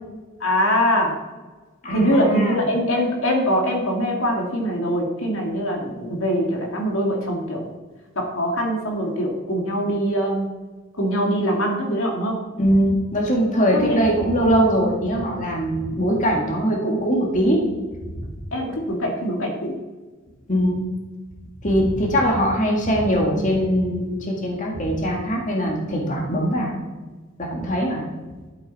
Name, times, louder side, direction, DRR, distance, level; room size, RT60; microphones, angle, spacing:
voice 1, 0.4-1.1 1.9-7.7 8.2-10.5 11.0-12.4 13.7-14.0 18.5-19.7, equal, 75° left, 0 dB, 2.1 m, -23 dB
voice 2, 1.8-2.6 12.6-17.6 18.1-18.2 20.5-20.9 21.6-26.8 27.4-28.1, equal, 40° left, -1 dB, 1.9 m, -21 dB
12.5 x 8.2 x 4.1 m, 1.3 s
head